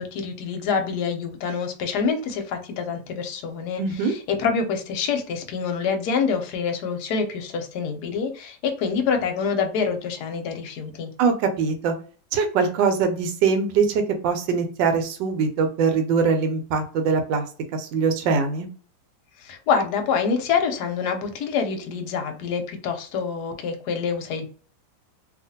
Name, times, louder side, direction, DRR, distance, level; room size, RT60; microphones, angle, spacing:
voice 1, 0.0-11.1 19.4-24.5, left 6 dB, 70° left, 5 dB, 1.1 m, -26 dB
voice 2, 3.8-4.1 11.2-11.9 12.3-17.4 17.7-18.7, right 5 dB, 80° right, 6 dB, 1.3 m, -22 dB
2.8 x 2.4 x 2.7 m, 0.40 s
omnidirectional pair, 2.0 m